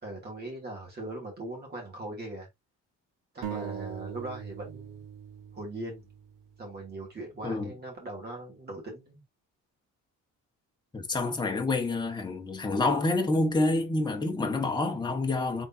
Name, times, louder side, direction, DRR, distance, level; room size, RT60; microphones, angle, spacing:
voice 1, 0.0-2.5 3.3-5.0 5.5-6.1 6.6-9.2, right 2 dB, 30° right, 2.4 m, -40 dB
sound 1, 3.4-7.0, right 8 dB, 80° right, 1.1 m, -41 dB
voice 2, 10.9-15.7, left 2 dB, 15° left, 1.1 m, -28 dB
5.0 x 4.0 x 2.6 m
cardioid pair, 155°, 32 cm